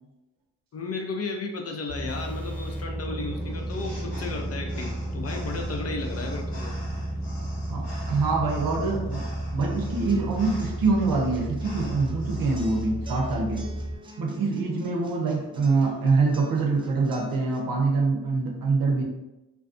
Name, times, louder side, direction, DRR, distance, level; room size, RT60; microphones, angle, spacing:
voice 1, 0.7-6.7, left 3 dB, 40° left, 3 dB, 0.5 m, -34 dB
sound 1, 1.9-14.0, right 1 dB, 5° left, 1.0 m, -33 dB
sound 2, 3.4-12.7, left 1 dB, 75° left, 1.1 m, -46 dB
voice 2, 7.7-9.3 9.5-13.7 14.2-19.0, right 3 dB, 60° right, 0 dB, 0.7 m, -25 dB
sound 3, 9.6-17.6, right 1 dB, 15° right, 0.5 m, -46 dB
2.4 x 2.2 x 2.5 m, 0.96 s
supercardioid pair, 40°, 39 cm